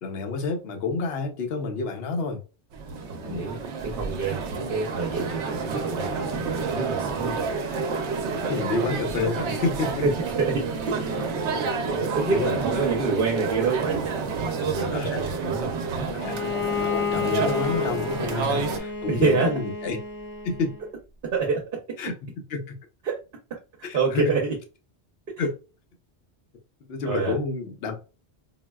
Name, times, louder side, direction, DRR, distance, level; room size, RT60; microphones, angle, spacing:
voice 1, 0.0-2.4 3.2-3.5 4.6-4.7 8.5-10.0 12.3-12.8 14.9-15.2 16.1-16.4 16.8-20.0 20.4-20.7 22.0-22.1 22.5-22.6 23.8-24.2 25.4-25.5 26.9-28.0, left 3 dB, 65° left, 0.9 m, -29 dB
sound 1, 2.7-18.8, right 4 dB, 90° right, 0.9 m, -29 dB
voice 2, 3.1-3.6 3.8-7.5 10.0-10.1 10.4-16.1 19.1-19.5 21.3-21.6 23.0-23.2 23.9-24.5 27.0-27.3, right 4 dB, 60° right, 0.8 m, -27 dB
Bowed string instrument, 16.2-20.9, left 7 dB, 35° left, 0.8 m, -30 dB
3.8 x 2.1 x 2.2 m
omnidirectional pair, 1.1 m